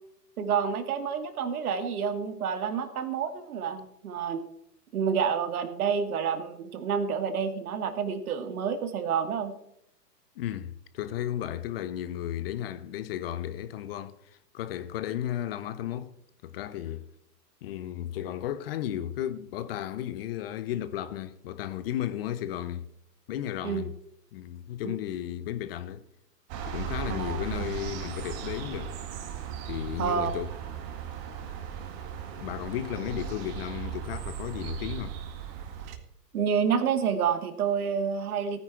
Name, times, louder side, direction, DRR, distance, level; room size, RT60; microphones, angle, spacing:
voice 1, 0.4-4.4 4.9-9.6 23.6-23.9 24.8-24.9 27.1-27.7 30.0-30.3 36.3-38.6, right 7 dB, 60° right, 2.2 m, -29 dB
voice 2, 10.4-16.1 16.4-17.1 17.6-22.9 23.3-23.9 24.3-26.0 26.7-28.9 29.7-30.5 32.4-35.1, left 11 dB, 35° left, 0.9 m, -34 dB
sound 1, 26.5-36.0, right 9 dB, 35° right, 2.0 m, -37 dB
16.5 x 10.0 x 4.5 m
hypercardioid pair, 125°, 49 cm